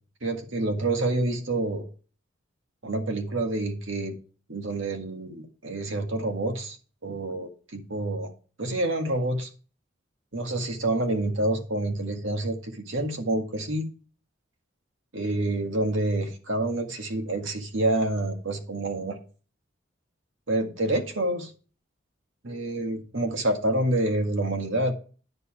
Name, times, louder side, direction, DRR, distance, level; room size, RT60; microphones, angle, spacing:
voice 1, 0.2-1.9 2.8-4.2 4.5-6.8 7.0-8.3 8.6-9.5 10.3-13.9 15.1-19.2 20.5-21.5 22.4-24.9, right 1 dB, 80° right, 1.9 m, -27 dB
9.9 x 6.9 x 4.7 m
head